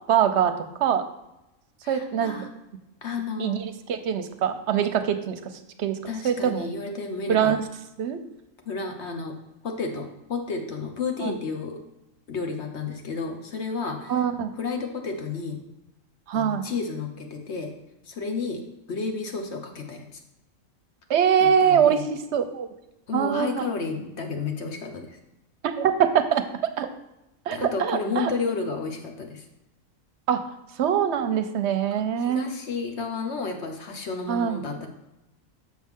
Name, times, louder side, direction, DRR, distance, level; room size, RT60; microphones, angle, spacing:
voice 1, 0.1-0.5 0.8-1.0 1.9-2.4 3.4-5.5 5.8-6.0 6.2-6.7 7.3-7.6 8.0-8.2 11.2-11.3 14.1-14.5 16.3-16.6 21.1-22.7 23.1-23.6 25.8-26.4 26.8-26.9 27.5-28.3 30.3-30.4 30.8-32.5 34.3-34.6, right 8 dB, 65° right, 8 dB, 0.8 m, -23 dB
voice 2, 1.8-2.5 3.0-3.6 6.0-7.5 8.7-9.3 9.6-11.8 12.3-14.1 14.6-15.6 16.3-17.7 18.1-18.6 18.9-20.1 21.4-22.0 23.1-25.2 27.5-29.4 32.2-34.9, left 4 dB, 60° left, 4 dB, 1.1 m, -31 dB
6.4 x 6.4 x 3.6 m, 0.91 s
omnidirectional pair, 1.4 m